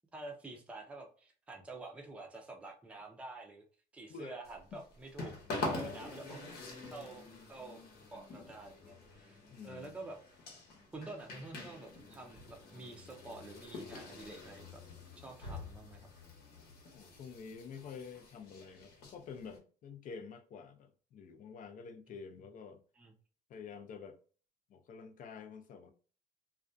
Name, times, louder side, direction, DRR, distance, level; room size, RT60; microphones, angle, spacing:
voice 1, 0.1-3.6 3.9-6.6 6.9-7.8 8.1-9.4 9.6-10.2 10.9-14.8 15.2-16.1 23.0-23.1, right 2 dB, 5° right, 0.5 m, -48 dB
voice 2, 4.1-4.4 5.8-6.0 9.5-10.0 16.9-22.8 23.5-24.2 24.7-25.9, left 5 dB, 50° left, 0.5 m, -48 dB
sound 1, 4.4-19.6, left 2 dB, 70° left, 0.9 m, -46 dB
2.4 x 2.2 x 2.5 m
cardioid pair, 110°, 17 cm